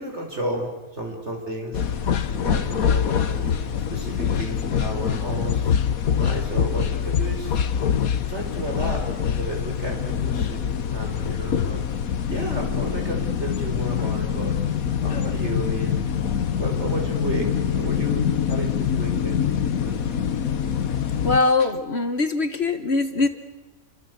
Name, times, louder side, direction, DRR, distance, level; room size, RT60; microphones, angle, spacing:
voice 1, 0.0-1.8 2.4-5.7 6.2-7.6 8.3-11.8 12.3-14.6 15.0-16.1 16.6-19.4 19.8-20.1, right 1 dB, 50° right, 2 dB, 5.7 m, -32 dB
sound 1, 1.7-21.4, left 8 dB, 80° left, 1.6 m, -24 dB
voice 2, 21.2-23.3, left 3 dB, 50° left, 9 dB, 1.5 m, -22 dB
28.5 x 25.0 x 8.1 m, 1.2 s
omnidirectional pair, 1.5 m